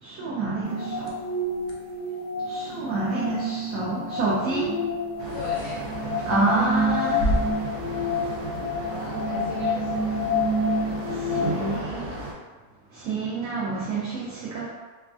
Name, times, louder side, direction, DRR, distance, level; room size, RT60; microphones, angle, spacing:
voice 1, 0.0-1.1 2.4-4.8 6.2-7.4 11.1-12.0 12.9-14.7, right 3 dB, 70° right, -7 dB, 0.9 m, -28 dB
sound 1, 0.6-11.8, left 1 dB, 85° left, 1.2 m, -28 dB
sound 2, 0.9-9.2, equal, 65° left, 0.6 m, -36 dB
sound 3, 5.2-12.3, right 2 dB, 90° right, 1.2 m, -35 dB
voice 2, 5.3-5.9 7.9-8.2 8.6-10.2 10.7-12.3, equal, 45° right, -10 dB, 1.4 m, -41 dB
3.2 x 2.3 x 2.3 m, 1.3 s
omnidirectional pair, 1.6 m